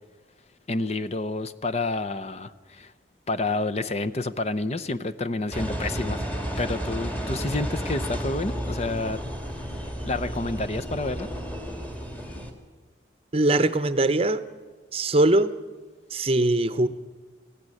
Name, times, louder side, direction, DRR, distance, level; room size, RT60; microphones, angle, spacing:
voice 1, 0.7-2.9 3.3-6.2 6.6-9.2 10.0-11.3, left 2 dB, 35° left, 11 dB, 0.7 m, -29 dB
Engine, 5.5-12.5, equal, 10° left, 2.0 m, -32 dB
voice 2, 13.3-14.4 14.9-15.5 16.1-16.9, right 2 dB, 30° right, 14 dB, 0.8 m, -21 dB
19.0 x 15.0 x 9.9 m, 1.4 s
head